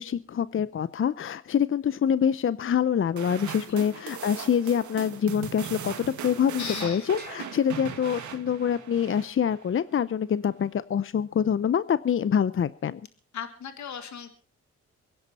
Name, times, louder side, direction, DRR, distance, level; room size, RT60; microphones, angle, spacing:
voice 1, 0.0-5.9 6.2-13.0, left 8 dB, 45° left, 16 dB, 0.6 m, -25 dB
sound 1, 3.2-9.7, right 8 dB, 85° right, 2.0 m, -39 dB
voice 2, 6.6-7.1 13.3-14.3, left 8 dB, 75° left, 8 dB, 2.0 m, -36 dB
sound 2, 7.2-8.7, right 3 dB, 35° right, 4.1 m, -51 dB
24.5 x 10.5 x 4.2 m, 0.37 s
cardioid pair, 60°, 29 cm